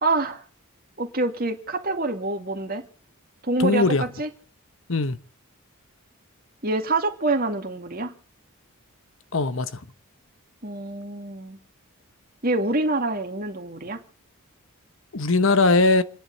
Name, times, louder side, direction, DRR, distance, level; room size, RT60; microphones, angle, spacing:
voice 1, 0.0-0.4 1.0-2.8 3.5-4.3 6.6-8.1 10.6-11.6 12.4-14.0, right 2 dB, 40° right, 2.3 m, -26 dB
voice 2, 3.6-4.0 4.9-5.2 9.3-9.7 15.1-16.0, left 3 dB, 65° left, 1.1 m, -20 dB
29.0 x 10.5 x 4.0 m
head